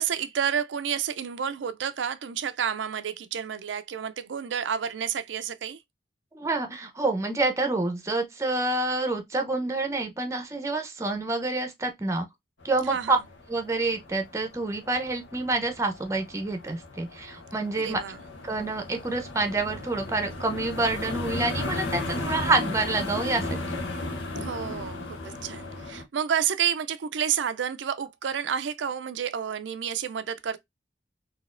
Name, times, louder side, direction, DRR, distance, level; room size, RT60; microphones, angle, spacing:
voice 1, 0.0-5.8 12.9-13.2 17.8-18.2 24.3-30.6, right 8 dB, 80° right, 0.4 m, -30 dB
voice 2, 6.3-12.3 12.6-13.2 13.5-18.0 18.4-23.8, right 2 dB, 15° right, 0.7 m, -28 dB
sound 1, 12.6-26.0, left 2 dB, 90° left, 0.9 m, -36 dB
4.0 x 2.8 x 2.5 m
head